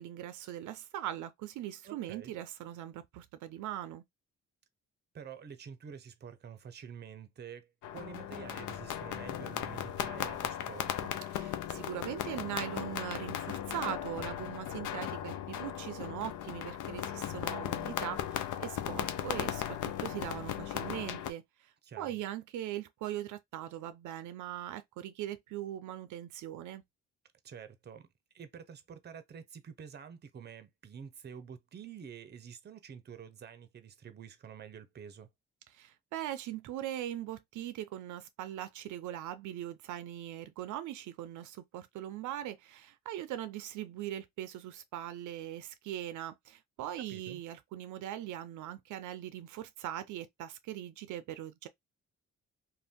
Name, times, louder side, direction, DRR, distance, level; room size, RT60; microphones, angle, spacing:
voice 1, 0.0-4.0 11.3-26.8 35.7-51.7, right 12 dB, 75° right, 0.5 m, -41 dB
voice 2, 1.8-2.3 5.1-11.2 21.8-22.2 27.4-28.1 28.3-35.3 47.0-47.4, right 7 dB, 35° right, 0.6 m, -48 dB
sound 1, 7.8-21.3, left 10 dB, 75° left, 0.5 m, -37 dB
2.6 x 2.1 x 3.5 m
cardioid pair, 90°, 30 cm